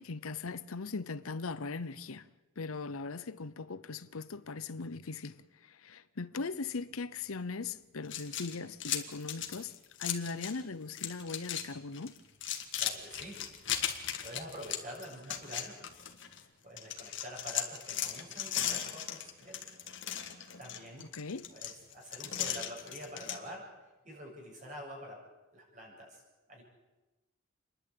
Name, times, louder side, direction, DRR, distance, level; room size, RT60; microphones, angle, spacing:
voice 1, 0.0-2.3 2.6-5.4 5.7-9.7 10.0-12.1 21.1-21.4, left 4 dB, 85° left, 0.8 m, -39 dB
sound 1, 8.0-10.6 10.9-11.7 11.9-16.4 16.8-23.4, left 10 dB, 60° left, 1.9 m, -37 dB
voice 2, 12.8-13.4 14.2-15.8 16.6-19.6 20.6-21.1 21.5-23.7 24.0-25.2 25.5-26.2 26.5-26.6, equal, 35° right, 7.4 m, -46 dB
29.5 x 11.5 x 8.5 m
head